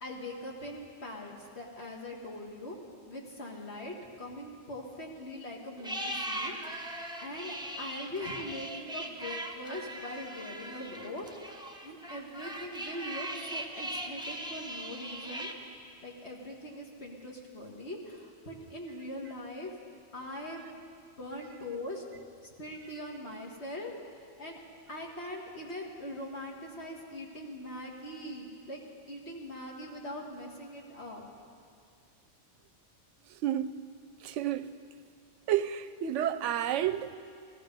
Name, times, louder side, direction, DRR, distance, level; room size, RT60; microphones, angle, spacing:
voice 1, 0.0-2.8 3.1-6.9 7.2-11.3 11.6-15.5 16.0-19.8 20.1-20.7 21.2-22.0 22.6-24.6 24.9-28.8 29.1-31.2, left 1 dB, 65° left, -1 dB, 2.1 m, -42 dB
sound 1, 5.8-15.5, right 1 dB, 5° right, 0.8 m, -39 dB
voice 2, 33.3-33.7 34.2-34.7 35.5-37.2, right 11 dB, 90° right, 13 dB, 0.9 m, -30 dB
17.0 x 14.0 x 5.3 m, 2.2 s
omnidirectional pair, 1.2 m